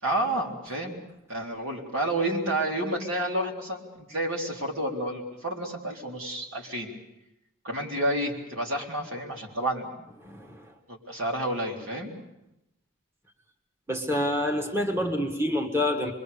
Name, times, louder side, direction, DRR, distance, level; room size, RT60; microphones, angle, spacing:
voice 1, 0.0-6.9 7.6-10.0 10.9-12.1, right 1 dB, 80° right, 0 dB, 4.0 m, -30 dB
voice 2, 10.2-10.7 13.9-16.1, left 1 dB, 10° right, 2 dB, 1.4 m, -27 dB
25.5 x 22.5 x 6.9 m, 0.88 s
head